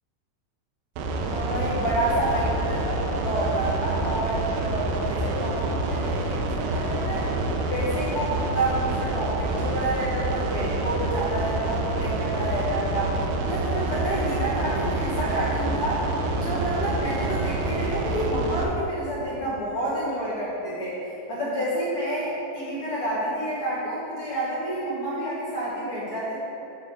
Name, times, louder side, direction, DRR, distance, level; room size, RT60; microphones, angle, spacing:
sound 1, 1.0-18.6, right 2 dB, 80° right, 2.5 m, -27 dB
voice 1, 1.3-7.3 7.6-13.2 13.5-16.0 16.3-21.0 21.3-26.3, right 1 dB, 55° left, -9 dB, 1.7 m, -29 dB
9.1 x 3.5 x 6.8 m, 2.9 s
omnidirectional pair, 4.6 m